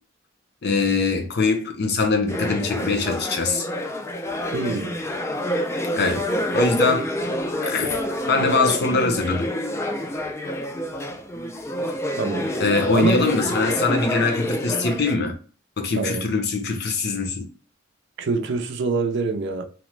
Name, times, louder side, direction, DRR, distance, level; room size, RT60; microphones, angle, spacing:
voice 1, 0.6-3.7 5.9-6.2 6.5-7.1 7.6-9.5 12.6-15.3 15.8-17.5, left 3 dB, 55° left, 0.6 m, -22 dB
sound 1, 2.3-15.1, left 1 dB, 15° left, 0.3 m, -27 dB
voice 2, 4.5-5.0 12.2-12.5 12.9-13.2 16.0-16.3 18.2-19.7, right 3 dB, 60° right, 0.5 m, -25 dB
2.9 x 2.1 x 3.1 m
head